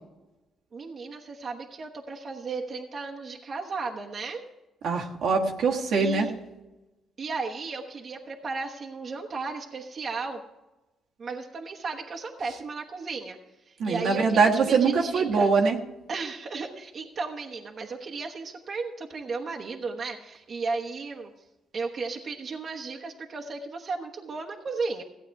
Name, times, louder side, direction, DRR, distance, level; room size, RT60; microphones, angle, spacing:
voice 1, 0.7-4.4 6.0-6.3 7.2-10.4 11.2-13.4 13.7-15.5 16.1-21.3 21.7-25.0, right 4 dB, 50° right, 0 dB, 1.1 m, -35 dB
voice 2, 4.8-6.3 13.8-15.8, right 4 dB, 70° right, 0 dB, 1.4 m, -23 dB
15.5 x 8.3 x 4.7 m, 1.0 s
cardioid pair, 90°, 0 cm